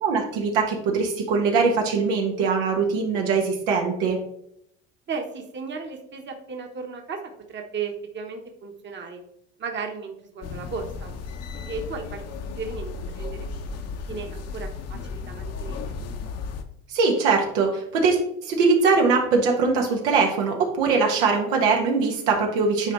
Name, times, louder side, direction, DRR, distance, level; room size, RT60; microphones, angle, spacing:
voice 1, 0.0-4.2 16.9-22.9, right 4 dB, 90° right, 1 dB, 1.6 m, -22 dB
voice 2, 5.1-7.2 7.5-9.2 9.6-11.1 11.6-12.2 12.5-13.5 14.1-16.0, right 5 dB, 35° right, 3 dB, 1.2 m, -35 dB
sound 1, 10.4-16.6, left 4 dB, 50° left, 0.9 m, -34 dB
9.9 x 4.0 x 3.1 m, 0.73 s
supercardioid pair, 95°, 32 cm